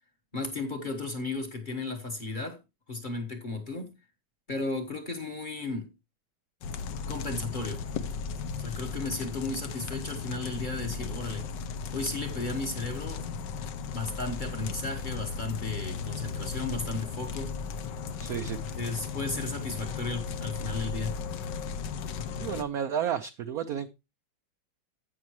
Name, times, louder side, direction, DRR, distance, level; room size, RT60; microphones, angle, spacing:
voice 1, 0.3-2.6 2.9-3.9 4.5-5.9 7.1-7.8 8.6-11.5 11.9-13.2 13.9-17.5 18.8-21.1, left 3 dB, 30° left, 1.2 m, -34 dB
sound 1, 6.6-22.6, left 5 dB, 65° left, 1.4 m, -36 dB
voice 2, 18.2-18.8 22.4-23.9, right 8 dB, 75° right, 0.8 m, -32 dB
15.5 x 5.9 x 3.0 m
omnidirectional pair, 2.2 m